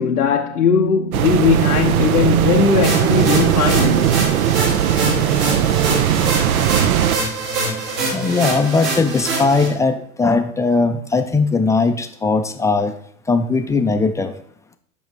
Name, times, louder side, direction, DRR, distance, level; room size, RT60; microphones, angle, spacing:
voice 1, 0.0-4.2, left 5 dB, 90° left, 0.7 m, -18 dB
sound 1, 1.1-7.2, right 10 dB, 70° right, 0.7 m, -18 dB
sound 2, 2.8-9.7, right 3 dB, 55° right, 2.8 m, -24 dB
voice 2, 8.1-12.9 13.3-14.3, left 3 dB, 5° left, 0.4 m, -19 dB
7.1 x 5.5 x 4.6 m
figure-of-eight pair, 85°, 44 cm